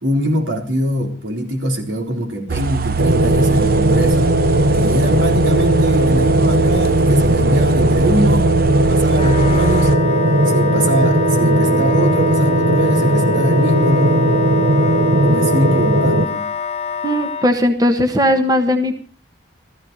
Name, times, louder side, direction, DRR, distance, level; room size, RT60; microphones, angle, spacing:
voice 1, 0.0-4.4 4.7-8.5 8.9-9.9 10.5-14.4 15.0-16.5, equal, 85° right, 2 dB, 4.0 m, -22 dB
sound 1, 2.5-10.0, right 5 dB, 50° right, 0.8 m, -22 dB
sound 2, 3.0-16.3, right 1 dB, 65° right, 1.3 m, -16 dB
Wind instrument woodwind instrument, 9.1-17.5, left 6 dB, 35° left, 0.6 m, -26 dB
voice 2, 17.0-18.9, equal, 20° right, 5 dB, 1.3 m, -17 dB
16.0 x 14.0 x 5.3 m, 0.38 s
head